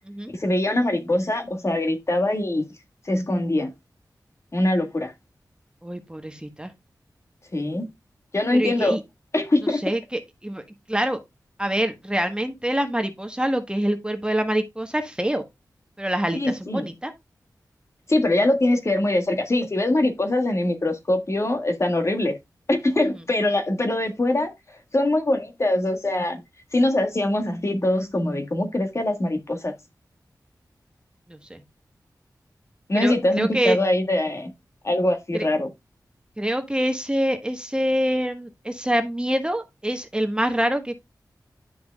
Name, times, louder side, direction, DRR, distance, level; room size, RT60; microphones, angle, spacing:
voice 1, 0.3-2.6 3.1-3.7 4.5-5.1 7.5-7.9 8.3-9.0 9.3-9.8 16.3-16.9 18.1-22.3 22.7-24.5 24.9-26.4 26.7-29.7 32.9-34.5 34.8-35.7, left 1 dB, 40° left, 1.7 m, -23 dB
voice 2, 5.8-6.7 8.5-9.0 9.8-10.6 10.9-11.2 11.6-15.4 16.0-17.1 31.3-31.6 32.9-33.8 35.3-35.5 36.4-41.0, right 1 dB, 15° right, 1.3 m, -25 dB
10.0 x 6.0 x 2.3 m
wide cardioid pair, 70°, 7 cm